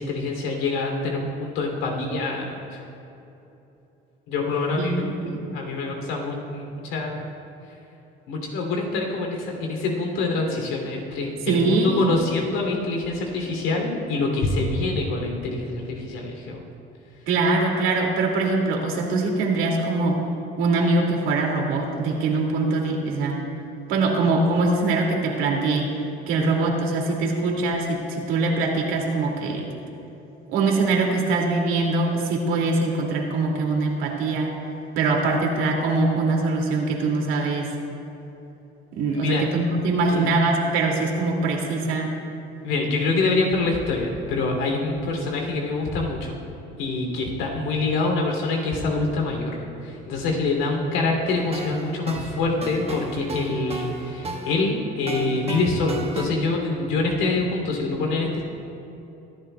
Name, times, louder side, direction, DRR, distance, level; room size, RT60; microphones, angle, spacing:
voice 1, 0.0-2.8 4.3-7.3 8.3-16.7 39.0-39.4 40.0-40.3 42.6-46.4 46.8-58.4, left 3 dB, 85° left, 1 dB, 2.9 m, -25 dB
voice 2, 4.7-5.4 11.5-12.1 17.3-20.2 20.6-23.4 23.9-25.9 26.3-29.7 30.5-34.5 35.0-37.7 38.9-42.1, right 3 dB, 80° right, 0 dB, 2.4 m, -23 dB
sound 1, 51.3-56.2, right 2 dB, 30° right, 1.5 m, -34 dB
24.0 x 11.0 x 2.3 m, 2.9 s
cardioid pair, 110°, 21 cm